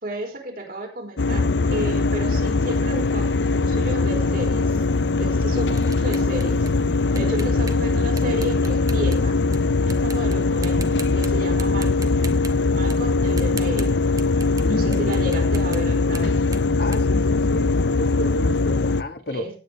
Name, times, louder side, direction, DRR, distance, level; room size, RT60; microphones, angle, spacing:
voice 1, 0.0-4.8 5.2-6.7 7.1-9.4 9.9-12.2 12.7-14.0 14.7-16.4 19.3-19.5, right 1 dB, 55° right, 4.6 m, -32 dB
sound 1, 1.2-19.0, left 3 dB, 75° left, 0.6 m, -21 dB
sound 2, 4.7-9.6 9.9-10.4 10.6-11.3 11.6-14.7 14.9-17.9, right 5 dB, 20° right, 1.2 m, -40 dB
voice 2, 14.6-15.1 16.8-19.5, left 1 dB, 60° left, 1.8 m, -31 dB
17.5 x 9.3 x 3.4 m
head